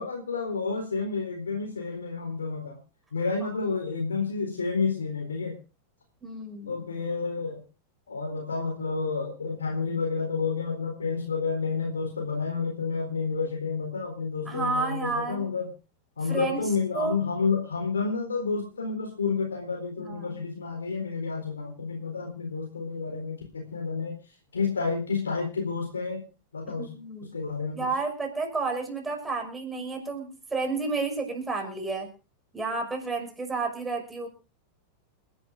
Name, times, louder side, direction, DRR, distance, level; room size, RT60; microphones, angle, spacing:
voice 1, 0.0-2.8 3.1-5.6 6.7-7.6 8.1-15.7 16.2-26.2 26.5-26.9 27.3-27.9, left 4 dB, 70° left, 2 dB, 4.0 m, -30 dB
voice 2, 6.2-6.8 14.5-15.4 16.3-16.7 16.9-17.2 20.0-20.4 26.8-27.3 27.7-32.1 32.5-34.3, right 3 dB, 10° right, 3 dB, 5.6 m, -31 dB
29.5 x 11.0 x 2.6 m, 0.32 s
figure-of-eight pair, 90°, 0 cm